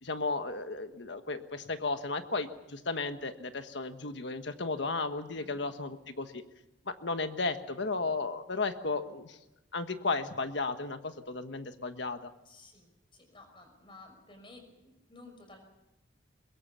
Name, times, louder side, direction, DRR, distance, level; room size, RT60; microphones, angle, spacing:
voice 1, 0.0-6.4 6.9-9.4 9.7-12.3, left 3 dB, 70° left, 8 dB, 1.4 m, -34 dB
voice 2, 12.4-15.6, left 2 dB, 25° left, 6 dB, 5.5 m, -54 dB
22.5 x 22.0 x 7.0 m, 0.92 s
head